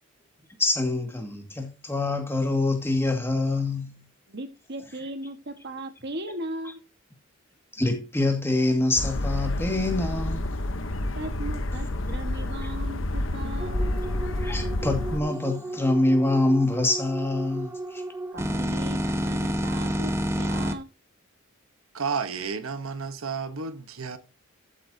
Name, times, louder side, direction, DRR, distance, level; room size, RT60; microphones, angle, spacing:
voice 1, 0.6-4.0 7.7-10.5 12.6-12.7 14.3-18.0, left 2 dB, 10° left, 2.0 m, -25 dB
voice 2, 4.3-6.8 11.1-13.8 18.3-20.9, right 1 dB, 55° right, 1.5 m, -37 dB
sound 1, 9.0-15.2, left 1 dB, 70° left, 1.0 m, -29 dB
sound 2, 13.6-20.7, equal, 10° right, 1.0 m, -31 dB
voice 3, 21.9-24.2, right 5 dB, 85° right, 1.2 m, -31 dB
14.0 x 8.6 x 2.8 m
head